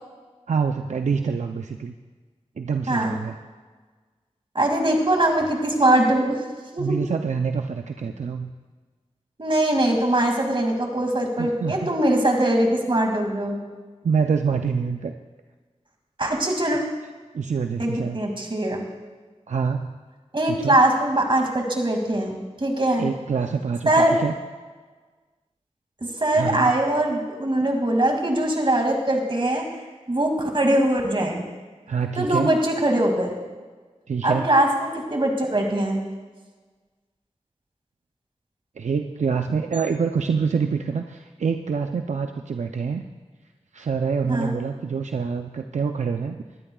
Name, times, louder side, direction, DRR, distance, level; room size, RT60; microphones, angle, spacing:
voice 1, 0.5-1.9 2.6-3.4 6.8-8.5 11.4-11.9 14.0-15.1 17.3-18.2 19.5-20.0 20.5-20.8 23.0-24.3 26.3-26.7 31.9-32.5 34.1-34.5 38.8-43.0 43.7-46.4, right 5 dB, 80° right, 5 dB, 0.5 m, -26 dB
voice 2, 2.9-3.2 4.5-6.4 6.7-7.0 9.4-13.6 16.2-16.8 17.8-18.8 20.3-23.1 23.9-24.2 26.0-29.6 30.1-31.4 32.2-33.3 34.2-36.0 44.3-44.6, right 1 dB, 45° right, 2 dB, 2.4 m, -22 dB
20.5 x 12.5 x 2.4 m, 1.4 s
wide cardioid pair, 50°, 12 cm